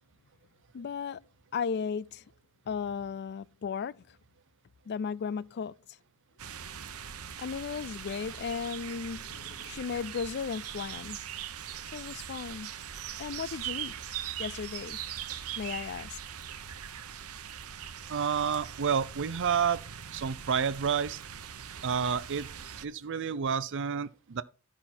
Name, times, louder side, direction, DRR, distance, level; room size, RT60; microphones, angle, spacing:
voice 1, 0.7-1.2 1.5-2.2 2.7-4.2 4.9-5.8 7.4-11.2 11.9-12.7 13.2-13.9 14.4-15.0 15.6-16.2, left 6 dB, 50° left, 0.4 m, -35 dB
sound 1, 6.4-22.8, right 9 dB, 90° right, 0.8 m, -41 dB
voice 2, 18.1-19.8 20.1-21.2 21.8-22.5 22.8-24.4, right 7 dB, 60° right, 0.5 m, -29 dB
13.0 x 5.8 x 4.3 m
head